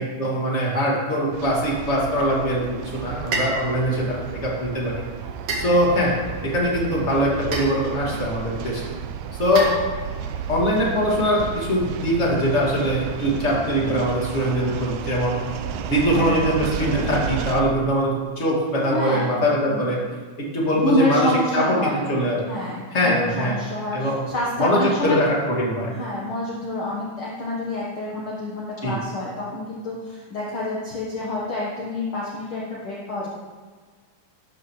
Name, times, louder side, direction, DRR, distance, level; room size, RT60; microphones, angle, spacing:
voice 1, 0.0-4.9 5.6-6.1 6.4-8.9 9.3-9.7 10.5-15.4 15.9-20.0 20.5-22.4 22.9-23.6 23.9-24.2 24.6-25.9 28.8-29.0, equal, 20° left, -3 dB, 2.0 m, -22 dB
sound 1, 1.3-17.6, right 7 dB, 90° right, 1.7 m, -32 dB
sound 2, 3.3-3.7 5.5-6.1 7.5-8.0 9.6-10.2, right 2 dB, 60° right, 3.2 m, -29 dB
voice 2, 16.1-16.4 18.9-19.4 19.7-19.8 20.7-22.2 22.5-25.2 25.8-33.3, left 1 dB, 60° left, -4 dB, 1.4 m, -27 dB
13.0 x 12.0 x 3.2 m, 1.5 s
omnidirectional pair, 4.3 m